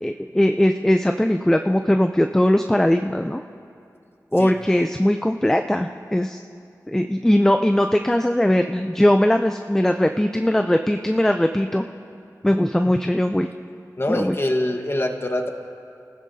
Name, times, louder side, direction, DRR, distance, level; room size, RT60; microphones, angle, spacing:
voice 1, 0.0-3.4 4.3-6.4 6.9-11.8 12.4-13.5 14.1-14.4, left 1 dB, 5° left, 6 dB, 0.4 m, -20 dB
voice 2, 14.0-15.5, left 1 dB, 35° left, 4 dB, 1.2 m, -24 dB
30.0 x 15.0 x 2.7 m, 2.5 s
wide cardioid pair, 75°, 7 cm